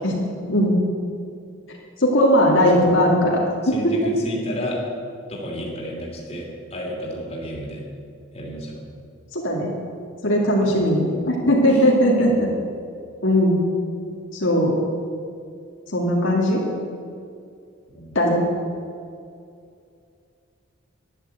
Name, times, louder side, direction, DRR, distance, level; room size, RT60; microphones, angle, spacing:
voice 1, 2.0-3.7 9.3-9.7 10.2-12.5 13.2-13.6 14.3-14.8 15.9-16.6 18.1-18.4, equal, 65° left, -2 dB, 2.2 m, -18 dB
voice 2, 2.6-2.9 3.6-4.8 5.3-7.8 8.3-8.8 10.6-10.8 11.7-11.8 12.2-12.4 17.9-18.2, equal, 30° left, -2 dB, 3.0 m, -32 dB
11.5 x 10.5 x 8.0 m, 2.4 s
head